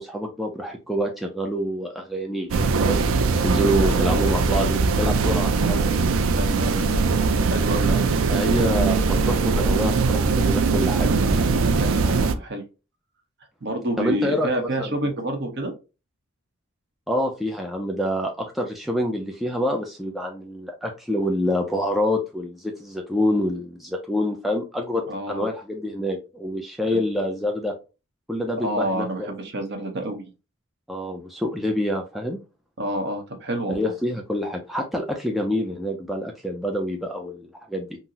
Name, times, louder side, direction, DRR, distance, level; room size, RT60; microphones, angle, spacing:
voice 1, 0.0-3.1 3.4-5.8 7.9-11.1 14.0-15.0 17.1-27.7 28.3-29.0 30.9-32.4 33.7-37.9, equal, ahead, 1 dB, 0.3 m, -27 dB
sound 1, 2.5-12.3, right 4 dB, 70° right, 0.4 m, -21 dB
voice 2, 6.3-7.1 7.4-8.0 11.6-12.6 13.6-15.7 25.1-25.5 26.9-27.0 28.6-30.2 32.8-33.8, right 1 dB, 55° right, 5 dB, 0.7 m, -28 dB
3.8 x 2.0 x 2.7 m, 0.29 s
head